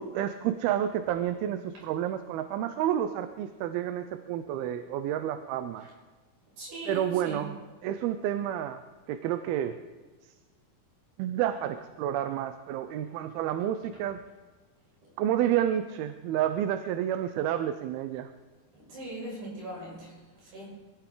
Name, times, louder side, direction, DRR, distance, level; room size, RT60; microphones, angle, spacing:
voice 1, 0.0-5.9 6.9-8.8 9.1-9.8 11.2-14.2 15.2-18.3, right 11 dB, 90° right, 9 dB, 2.6 m, -30 dB
voice 2, 6.6-7.5 18.7-20.2 20.4-20.8, right 1 dB, 70° right, -3 dB, 8.0 m, -40 dB
23.0 x 16.5 x 3.8 m, 1.3 s
omnidirectional pair, 4.3 m